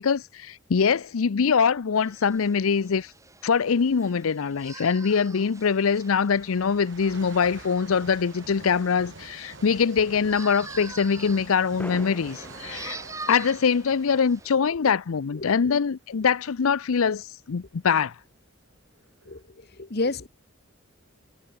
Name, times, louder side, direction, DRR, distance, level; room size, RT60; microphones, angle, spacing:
voice 1, 0.0-3.1 3.4-13.0 13.3-18.1, left 6 dB, 85° left, 0.5 m, -23 dB
sound 1, 2.0-14.5, right 3 dB, 15° right, 7.9 m, -45 dB
sound 2, 2.3-2.6 3.7-3.8 4.6-16.0 16.6-16.7 17.5-17.6 17.8-19.4, right 3 dB, 60° right, 3.5 m, -48 dB
sound 3, 10.0-10.7 11.0-11.1 11.8-14.9, left 1 dB, 10° left, 2.2 m, -45 dB
voice 2, 15.3-15.8 19.2-20.3, left 3 dB, 50° left, 1.1 m, -31 dB
head